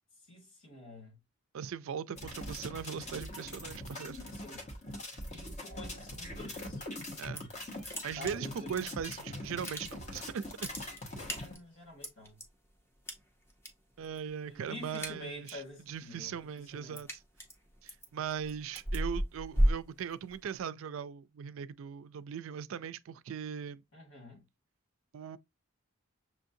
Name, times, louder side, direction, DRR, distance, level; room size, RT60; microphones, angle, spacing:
voice 1, 0.3-1.2 4.3-4.7 5.3-6.8 8.2-8.7 11.3-12.4 14.4-17.0 23.9-24.4, left 2 dB, 70° left, 2.7 m, -48 dB
voice 2, 1.5-4.2 7.2-7.4 8.0-10.7 14.0-15.6 15.9-17.2 17.8-23.8 25.1-25.4, right 7 dB, 70° right, 0.3 m, -39 dB
sound 1, 2.2-11.5, left 1 dB, 35° left, 1.0 m, -43 dB
sound 2, 7.1-7.6 7.8-9.2 9.5-10.1 10.4-12.4 13.1-13.7 14.0-14.3 14.6-15.7 16.1-20.6, equal, 10° left, 0.7 m, -34 dB
6.2 x 2.6 x 2.6 m
head